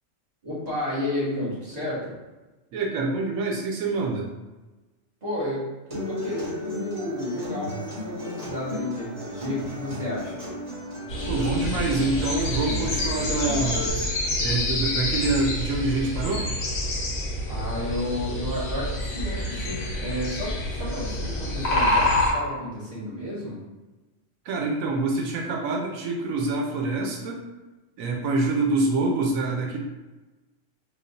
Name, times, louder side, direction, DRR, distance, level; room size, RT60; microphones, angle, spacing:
voice 1, 0.4-2.1 5.2-10.4 17.5-23.6, left 1 dB, 30° right, -8 dB, 1.5 m, -32 dB
voice 2, 2.7-4.3 11.3-13.9 14.4-16.5 24.4-27.4 28.0-29.8, right 3 dB, 90° right, 1 dB, 1.0 m, -26 dB
Acoustic guitar, 5.9-13.9, left 1 dB, 60° right, 1.8 m, -35 dB
sound 1, 11.1-22.3, left 1 dB, 55° left, 1.1 m, -27 dB
4.9 x 2.4 x 2.6 m, 1.1 s
omnidirectional pair, 1.4 m